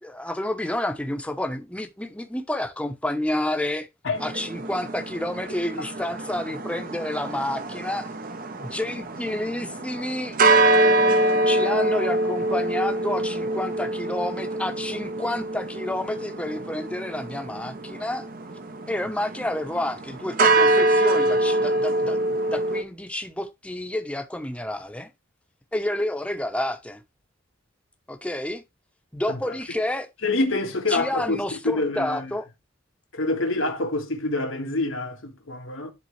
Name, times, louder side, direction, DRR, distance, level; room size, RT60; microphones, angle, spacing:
voice 1, 0.0-3.9 4.2-8.1 8.6-10.4 11.1-18.3 18.9-25.1 25.7-27.0 28.1-28.6 29.1-30.1 30.9-32.5, left 1 dB, 5° left, 0.8 m, -29 dB
sound 1, 4.1-22.8, right 2 dB, 45° right, 0.7 m, -25 dB
voice 2, 30.2-31.4 31.6-32.2 33.1-35.9, left 2 dB, 85° left, 1.7 m, -26 dB
10.5 x 3.7 x 3.2 m
head